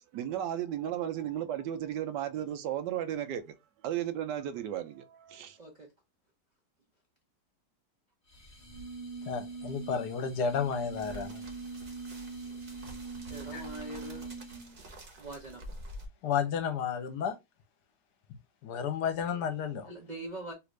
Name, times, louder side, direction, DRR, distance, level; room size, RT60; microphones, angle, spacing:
voice 1, 0.0-3.5 3.8-5.6, right 11 dB, 80° right, 1.2 m, -34 dB
voice 2, 5.6-5.9 13.2-14.3 15.2-15.6 19.8-20.5, right 1 dB, 60° right, 0.4 m, -43 dB
sound 1, 8.3-14.8, right 4 dB, 35° left, 1.1 m, -43 dB
voice 3, 9.3-11.4 13.5-13.6 16.2-17.3 18.6-19.9, left 7 dB, 75° left, 1.2 m, -32 dB
sound 2, 10.6-16.1, right 1 dB, 40° right, 0.8 m, -48 dB
3.3 x 2.5 x 3.0 m
omnidirectional pair, 1.9 m